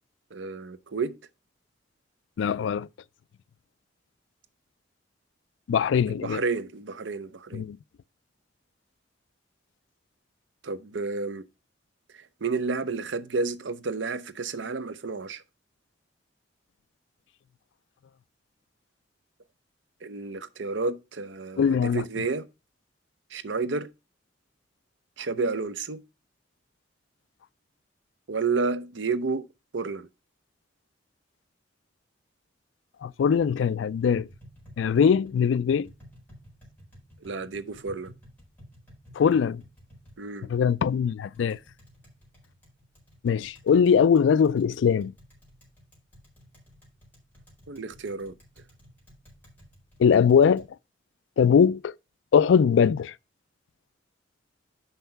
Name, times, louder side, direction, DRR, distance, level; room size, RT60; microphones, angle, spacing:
voice 1, 0.3-1.2 6.1-7.6 10.6-11.4 12.1-15.4 20.0-22.5 23.3-23.9 25.2-26.0 28.3-29.4 29.7-30.1 37.2-38.1 40.2-40.5 47.7-48.3, right 4 dB, 75° right, 0.7 m, -31 dB
voice 2, 2.4-2.9 5.7-6.4 7.5-7.8 21.6-22.0 33.0-34.3 34.8-35.9 39.1-39.6 40.5-41.6 43.2-45.1 50.0-50.7 51.4-51.9 52.3-53.1, left 7 dB, 75° left, 0.3 m, -21 dB
Tap, 33.8-50.7, equal, 10° left, 4.4 m, -54 dB
5.7 x 5.4 x 5.7 m
head